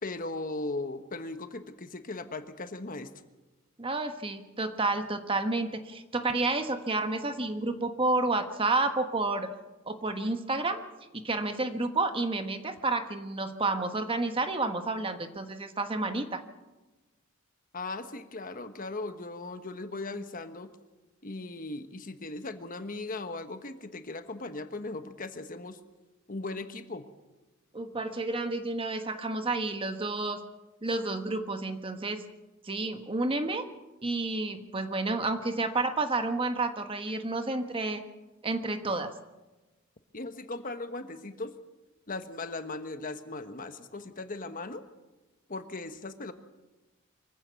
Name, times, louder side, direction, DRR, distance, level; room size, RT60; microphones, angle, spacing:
voice 1, 0.0-3.1 17.7-20.7 21.2-25.8 26.3-27.0 40.1-41.5 42.1-44.8 45.5-46.3, left 2 dB, 40° left, 8 dB, 1.3 m, -38 dB
voice 2, 3.8-9.5 9.9-10.8 11.1-16.4 27.7-30.4 30.8-32.2 32.6-33.7 34.0-38.0 38.4-39.1, right 2 dB, 25° right, 7 dB, 1.3 m, -30 dB
24.0 x 15.5 x 7.0 m, 1.1 s
head